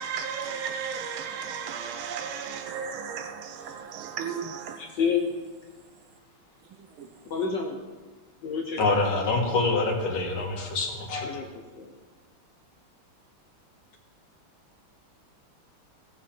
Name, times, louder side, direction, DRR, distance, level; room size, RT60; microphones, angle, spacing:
voice 1, 0.0-4.9 7.0-7.1, right 7 dB, 85° right, 1.7 m, -34 dB
voice 2, 4.8-5.4 7.2-7.8 8.4-9.0 11.1-11.5 11.7-11.9, left 6 dB, 65° left, 1.6 m, -29 dB
voice 3, 8.8-11.2, left 3 dB, 85° left, 2.6 m, -25 dB
18.5 x 7.3 x 4.4 m
omnidirectional pair, 2.2 m